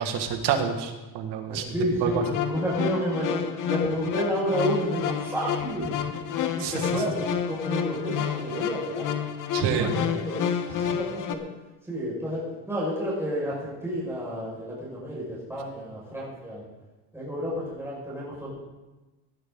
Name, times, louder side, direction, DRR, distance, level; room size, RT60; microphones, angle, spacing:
voice 1, 0.0-1.6 2.0-2.2 6.6-6.7 9.5-9.9, right 8 dB, 80° right, 6 dB, 1.9 m, -27 dB
voice 2, 1.5-6.0 6.4-9.3 9.6-11.4 11.8-16.6 17.1-18.5, equal, 5° right, -7 dB, 5.5 m, -31 dB
sound 1, 2.1-11.3, left 8 dB, 50° left, 1.2 m, -29 dB
18.0 x 11.0 x 3.9 m, 1.1 s
cardioid pair, 135°, 41 cm